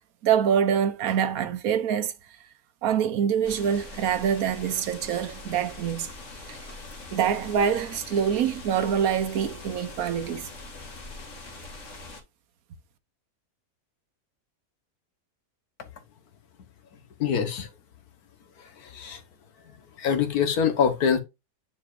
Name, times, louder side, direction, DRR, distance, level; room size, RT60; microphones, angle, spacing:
voice 1, 0.2-2.1 2.8-6.1 6.5-6.6 7.1-10.5, right 8 dB, 75° right, 1.3 m, -25 dB
sound 1, 3.4-12.2, left 3 dB, 55° left, 1.9 m, -42 dB
voice 2, 17.2-17.7 18.9-19.2 20.0-21.2, left 7 dB, 85° left, 1.6 m, -24 dB
9.5 x 4.5 x 2.5 m
omnidirectional pair, 1.6 m